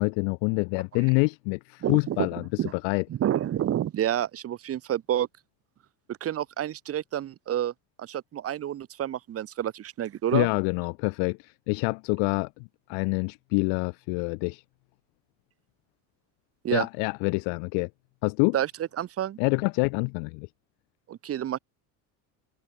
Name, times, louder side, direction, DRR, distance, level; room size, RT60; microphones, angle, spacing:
voice 1, 0.0-3.0 10.3-12.5 12.9-14.6 16.7-17.9 18.2-18.6 19.4-20.5, left 40 dB or more, 90° left, 7.3 m, -26 dB
voice 2, 1.8-2.3 2.6-2.7 3.1-5.3 6.1-7.7 8.0-10.5 16.6-16.9 18.5-18.7 19.0-19.4 21.1-21.6, right 11 dB, 35° right, 2.8 m, -29 dB
cardioid pair, 175°, 42 cm